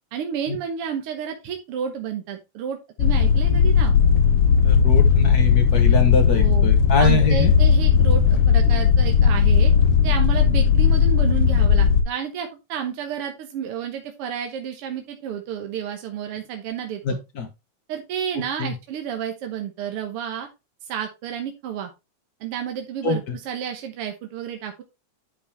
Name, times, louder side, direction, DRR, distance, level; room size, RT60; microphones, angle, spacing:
voice 1, 0.1-3.9 6.3-6.7 7.0-9.7 10.0-17.2 17.9-20.5 20.8-21.9 22.4-24.8, right 8 dB, 60° right, 4 dB, 1.6 m, -31 dB
sound 1, 3.0-12.0, left 6 dB, 60° left, 1.6 m, -17 dB
voice 2, 4.6-7.5 17.0-17.5 18.6-18.7 23.0-23.3, left 4 dB, 80° left, 6 dB, 0.8 m, -23 dB
10.0 x 5.5 x 3.4 m, 0.25 s
omnidirectional pair, 3.6 m